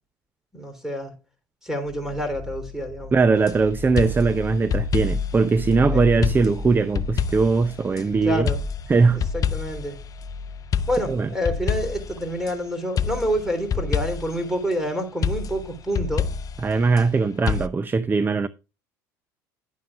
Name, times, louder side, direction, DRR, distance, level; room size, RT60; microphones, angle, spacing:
voice 1, 0.5-1.1 1.6-3.1 5.9-6.0 8.2-8.6 9.1-10.0 10.9-16.3, equal, 5° right, 3.4 m, -28 dB
sound 1, 1.8-17.7, left 4 dB, 45° right, 3.5 m, -36 dB
voice 2, 3.1-8.5 8.9-9.2 11.0-11.3 16.6-18.5, right 4 dB, 20° right, 0.5 m, -20 dB
sound 2, 3.4-3.6 4.0-5.4 6.2-8.0 8.5-9.9 10.7-12.5 13.0-14.4 15.2-17.1 17.5-17.7, left 6 dB, 40° left, 0.6 m, -27 dB
11.0 x 9.3 x 2.4 m
hypercardioid pair, 80°, 9 cm